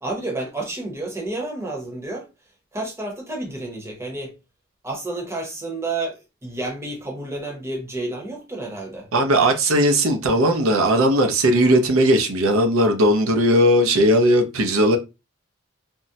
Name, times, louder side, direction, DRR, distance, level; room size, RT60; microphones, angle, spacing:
voice 1, 0.0-2.3 2.7-4.3 4.8-9.1, right 2 dB, 15° right, 0.7 m, -30 dB
voice 2, 9.1-15.0, equal, 90° right, 0.6 m, -17 dB
3.5 x 2.1 x 2.7 m
head